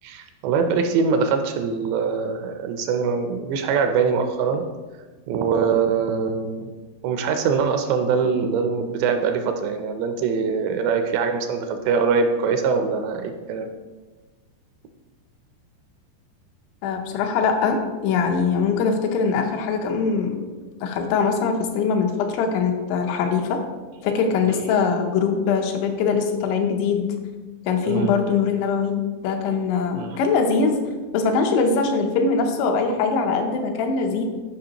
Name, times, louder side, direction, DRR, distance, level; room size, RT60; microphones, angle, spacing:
voice 1, 0.0-4.6 5.3-6.7 7.0-13.7 27.8-28.1 30.0-30.2, right 5 dB, 80° right, 6 dB, 2.6 m, -23 dB
voice 2, 16.8-20.4 20.8-23.6 24.0-27.1 27.7-28.9 29.2-30.8 31.1-34.3, left 5 dB, 85° left, 4 dB, 3.1 m, -22 dB
12.0 x 5.3 x 2.9 m, 1.3 s
omnidirectional pair, 5.2 m